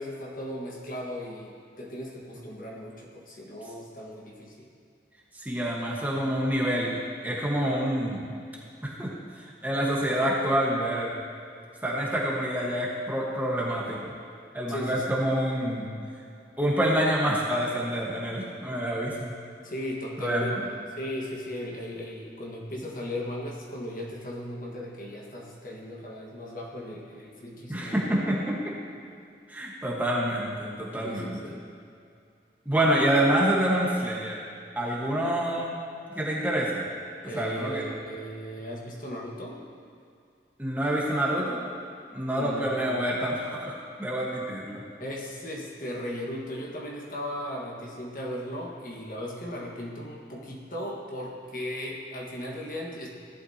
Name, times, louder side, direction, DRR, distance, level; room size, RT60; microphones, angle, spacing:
voice 1, 0.0-4.7 14.7-15.2 19.6-28.1 31.0-31.6 33.1-33.2 33.6-34.0 37.2-39.6 42.3-43.0 45.0-53.1, equal, 50° left, -2 dB, 1.6 m, -37 dB
voice 2, 5.3-8.3 8.8-9.1 9.6-11.2 11.8-14.1 14.5-15.9 16.6-19.3 20.2-20.6 27.7-28.6 29.5-31.4 32.6-34.4 34.7-35.7 36.1-36.8 37.3-37.8 40.6-41.6 42.1-43.7 44.0-44.8, right 1 dB, 10° right, -4 dB, 1.4 m, -27 dB
17.0 x 11.5 x 2.9 m, 2.4 s
head